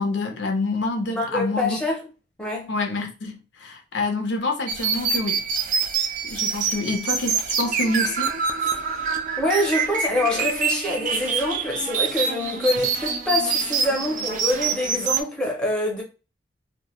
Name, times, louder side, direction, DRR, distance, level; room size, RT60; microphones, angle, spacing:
voice 1, 0.0-1.8 2.7-5.4 6.3-8.3, left 2 dB, 80° left, 0.5 m, -27 dB
voice 2, 1.1-2.0 2.4-2.7 9.4-16.0, left 1 dB, 5° left, 0.5 m, -25 dB
sound 1, 4.7-15.2, right 6 dB, 45° right, 0.3 m, -26 dB
2.1 x 2.1 x 2.9 m
head